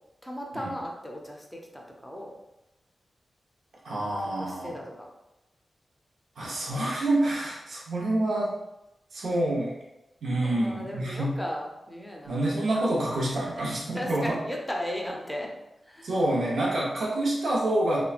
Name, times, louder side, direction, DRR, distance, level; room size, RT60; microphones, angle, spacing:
voice 1, 0.2-2.3 4.4-5.1 10.4-12.4 13.3-13.4 13.9-15.5 15.9-16.1, equal, 5° left, -1 dB, 0.5 m, -36 dB
voice 2, 3.8-4.8 6.4-8.6 9.1-9.7 10.2-11.3 12.3-14.4 16.0-18.0, right 1 dB, 85° right, -5 dB, 0.8 m, -27 dB
3.0 x 2.2 x 2.4 m, 0.94 s
wide cardioid pair, 95°, 0 cm